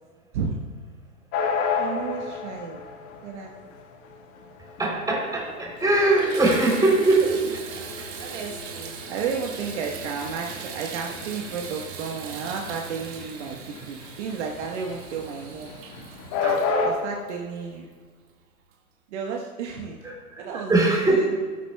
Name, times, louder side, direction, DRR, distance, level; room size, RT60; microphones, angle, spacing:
sound 1, 1.3-16.9, left 5 dB, 30° left, 1.9 m, -32 dB
voice 1, 1.8-2.9 3.2-3.5 6.8-7.3 8.2-15.7 16.4-17.9 19.1-20.0 20.4-21.4, right 5 dB, 50° right, 0 dB, 1.4 m, -33 dB
voice 2, 4.8-7.3 20.0-20.4 20.7-21.2, right 2 dB, 10° right, -2 dB, 3.4 m, -21 dB
Water tap faucet / Bathtub (filling or washing), 5.1-5.2 5.7-18.1 18.7-18.8 19.3-19.4, right 5 dB, 30° right, 1.9 m, -40 dB
20.5 x 8.4 x 2.3 m, 1.5 s
hypercardioid pair, 120°, 44 cm